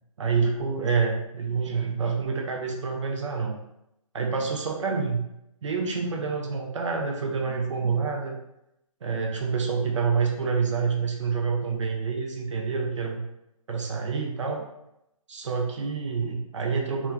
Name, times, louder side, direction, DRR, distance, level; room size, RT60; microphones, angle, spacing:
voice 1, 0.2-3.6 4.1-5.2 5.6-8.4 9.0-13.2 13.7-14.7 15.3-17.1, right 5 dB, 55° right, 2 dB, 0.4 m, -27 dB
2.2 x 2.2 x 3.1 m, 0.85 s
figure-of-eight pair, 140°, 18 cm